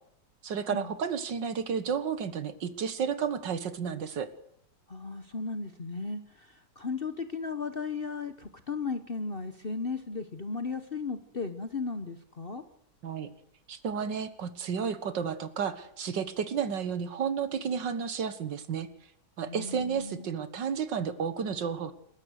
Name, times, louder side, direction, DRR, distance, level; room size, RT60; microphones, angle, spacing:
voice 1, 0.4-4.3 13.0-13.3 13.7-18.9 19.4-21.9, right 7 dB, 80° right, 12 dB, 2.0 m, -32 dB
voice 2, 4.9-12.6 19.5-20.3, left 4 dB, 35° left, 10 dB, 1.1 m, -36 dB
28.0 x 14.5 x 6.5 m, 0.70 s
omnidirectional pair, 1.9 m